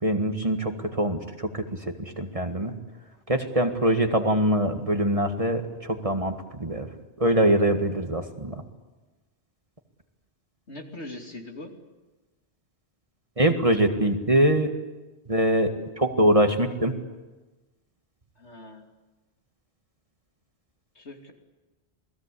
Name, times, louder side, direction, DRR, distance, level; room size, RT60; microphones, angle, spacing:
voice 1, 0.0-2.7 3.3-6.9 7.2-8.6 13.4-14.7 15.3-15.7 16.0-16.9, right 1 dB, 30° right, 5 dB, 1.9 m, -23 dB
voice 2, 10.7-11.7 18.4-18.9 20.9-21.3, left 1 dB, 70° left, 3 dB, 3.2 m, -41 dB
28.0 x 19.5 x 8.4 m, 1.2 s
omnidirectional pair, 1.2 m